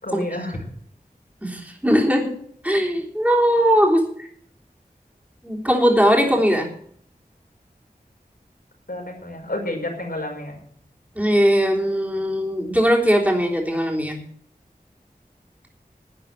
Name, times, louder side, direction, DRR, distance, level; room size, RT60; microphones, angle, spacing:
voice 1, 0.0-0.6 8.9-10.6, left 1 dB, 75° left, -1 dB, 5.2 m, -30 dB
voice 2, 1.4-2.4 2.6-4.3 5.4-6.7 11.2-14.2, equal, 10° right, 0 dB, 3.5 m, -19 dB
12.0 x 9.3 x 7.4 m, 0.63 s
wide cardioid pair, 50°, 16 cm